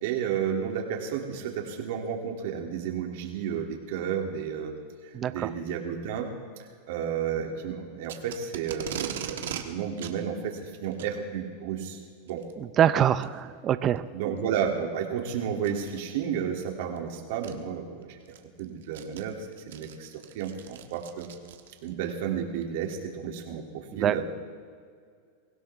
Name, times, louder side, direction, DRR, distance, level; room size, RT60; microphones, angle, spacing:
voice 1, 0.0-4.7 5.0-6.3 6.9-12.0 12.3-12.4 14.1-18.2 18.6-20.1 20.3-21.3 21.8-24.3, right 8 dB, 65° right, 2 dB, 2.7 m, -32 dB
voice 2, 5.1-5.5 12.8-14.1 24.0-24.3, right 10 dB, 30° right, 13 dB, 0.6 m, -24 dB
Packing tape duct tape, 8.1-9.6 10.0-10.2 10.9-11.1 12.3-12.5 13.2-13.3 14.0-14.1 15.6-15.9 17.0-17.1 17.4-17.5 18.0-21.9, right 10 dB, 85° right, 1.4 m, -39 dB
24.0 x 16.0 x 3.5 m, 2.1 s
supercardioid pair, 140°, 0 cm